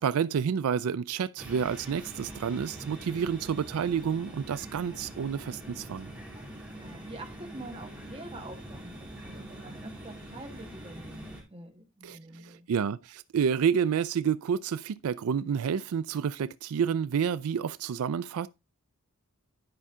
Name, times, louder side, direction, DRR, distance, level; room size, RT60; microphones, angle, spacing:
voice 1, 0.0-6.1 12.0-18.5, right 7 dB, 85° right, 0.4 m, -29 dB
sound 1, 1.4-11.4, right 1 dB, 5° right, 2.8 m, -44 dB
voice 2, 6.4-12.7, right 2 dB, 25° right, 1.4 m, -46 dB
10.0 x 5.5 x 3.6 m
head